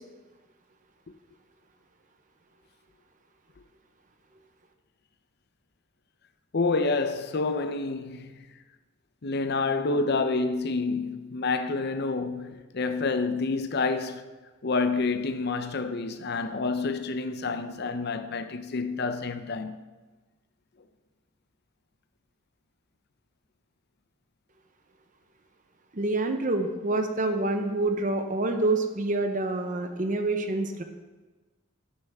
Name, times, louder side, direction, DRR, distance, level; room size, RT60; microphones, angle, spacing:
voice 1, 6.5-8.3 9.2-14.2 14.6-19.8, left 3 dB, 50° left, 0.6 m, -28 dB
voice 2, 25.9-30.8, right 2 dB, 40° right, 0.8 m, -27 dB
11.0 x 9.8 x 3.6 m
head